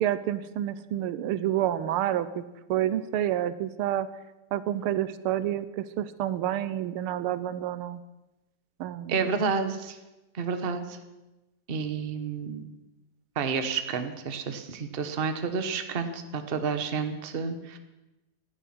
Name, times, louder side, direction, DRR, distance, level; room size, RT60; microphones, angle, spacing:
voice 1, 0.0-2.4 2.7-4.1 4.5-8.0 8.8-9.4, right 12 dB, 80° right, 15 dB, 1.6 m, -29 dB
voice 2, 9.1-10.0 10.3-11.0 11.7-12.6 13.4-17.8, right 5 dB, 35° right, 8 dB, 1.1 m, -30 dB
17.0 x 12.0 x 6.0 m, 1.0 s
omnidirectional pair, 2.4 m